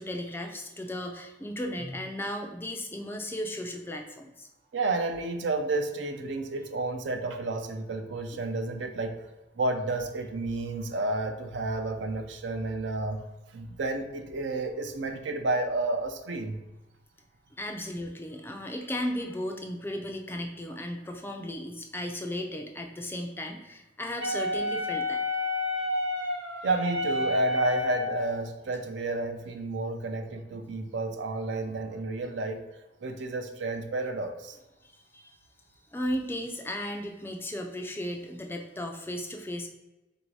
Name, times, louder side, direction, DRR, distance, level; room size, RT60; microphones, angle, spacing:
voice 1, 0.0-4.5 17.6-25.2 34.8-35.4 35.9-39.7, left 1 dB, 10° left, 3 dB, 0.4 m, -35 dB
voice 2, 4.7-9.2 9.6-13.2 13.5-16.6 26.6-32.6 33.0-34.6, right 2 dB, 65° right, 6 dB, 0.5 m, -31 dB
Wind instrument woodwind instrument, 24.2-28.4, left 1 dB, 85° right, 0.9 m, -30 dB
3.8 x 2.6 x 4.6 m, 1.0 s
head